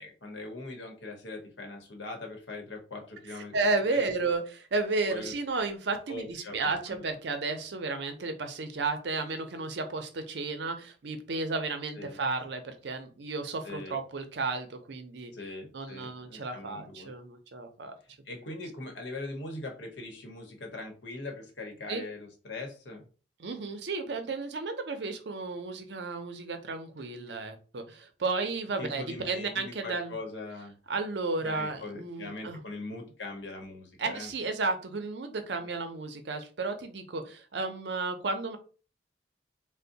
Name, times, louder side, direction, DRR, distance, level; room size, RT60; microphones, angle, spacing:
voice 1, 0.0-4.1 5.1-5.3 6.1-6.6 6.9-7.0 12.0-12.2 13.6-14.0 15.3-17.1 18.2-23.1 28.8-30.7 31.4-34.3 35.6-35.8, left 2 dB, 75° left, 2 dB, 0.9 m, -41 dB
voice 2, 3.5-15.3 15.7-17.9 21.9-22.0 23.4-30.1 30.9-32.6 34.0-38.6, right 3 dB, 65° right, 7 dB, 0.5 m, -33 dB
2.6 x 2.1 x 3.9 m, 0.37 s
head